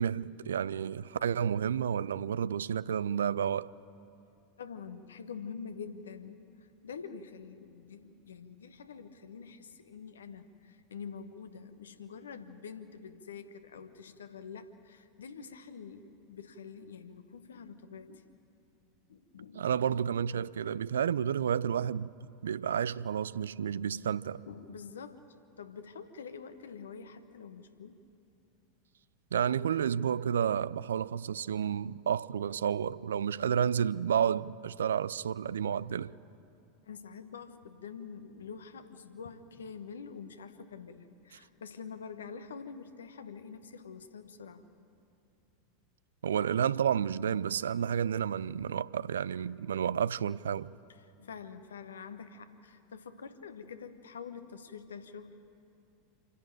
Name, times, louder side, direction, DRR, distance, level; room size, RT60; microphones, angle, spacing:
voice 1, 0.0-3.7 19.6-22.1 22.4-24.4 29.3-36.1 46.2-50.7, right 8 dB, 70° right, 0.4 m, -31 dB
voice 2, 4.6-18.2 19.1-19.7 24.5-28.0 31.8-31.9 35.7-36.1 36.8-44.6 51.0-55.4, left 6 dB, 70° left, 1.2 m, -46 dB
27.5 x 11.0 x 9.0 m
figure-of-eight pair, 85°, 0 cm